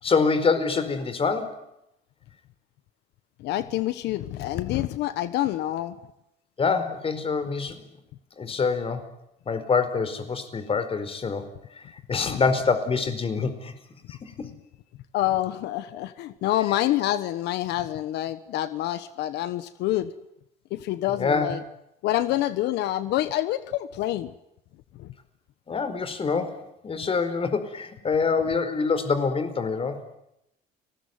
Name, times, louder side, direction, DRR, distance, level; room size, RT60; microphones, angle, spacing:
voice 1, 0.0-1.6 6.6-7.8 8.4-9.0 9.5-11.5 11.8-13.7 14.1-14.5 21.2-21.5 25.7-30.0, left 5 dB, 35° left, 11 dB, 4.7 m, -25 dB
voice 2, 3.4-5.9 12.2-12.4 15.1-20.1 20.7-21.6 22.0-24.3 25.0-25.1, left 14 dB, 85° left, 13 dB, 1.3 m, -27 dB
30.0 x 20.5 x 9.6 m, 0.84 s
cardioid pair, 110°, 17 cm